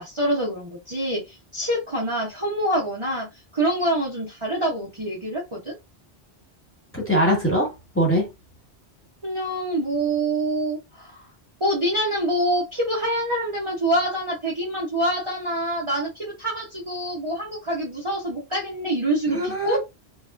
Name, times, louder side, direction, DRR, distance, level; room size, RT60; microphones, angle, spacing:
voice 1, 0.0-3.3 3.5-5.7 9.2-11.3 11.6-19.8, right 1 dB, 30° right, 0.9 m, -26 dB
voice 2, 6.9-8.3 19.3-19.8, equal, 10° left, 1.3 m, -22 dB
3.2 x 2.3 x 2.5 m
omnidirectional pair, 1.1 m